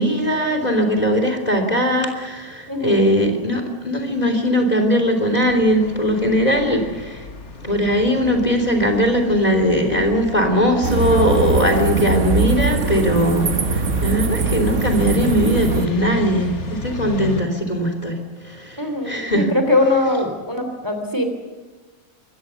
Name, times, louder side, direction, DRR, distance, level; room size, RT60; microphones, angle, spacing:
voice 1, 0.0-7.2 7.6-18.8 19.0-19.5, equal, 25° left, 5 dB, 3.3 m, -19 dB
voice 2, 2.7-3.2 11.1-11.8 18.8-21.2, left 2 dB, 15° right, 5 dB, 3.0 m, -22 dB
sound 1, 5.4-17.4, left 3 dB, 50° left, 1.8 m, -33 dB
sound 2, 10.8-15.9, right 5 dB, 55° right, 1.6 m, -22 dB
25.0 x 23.0 x 7.0 m, 1.3 s
omnidirectional pair, 1.6 m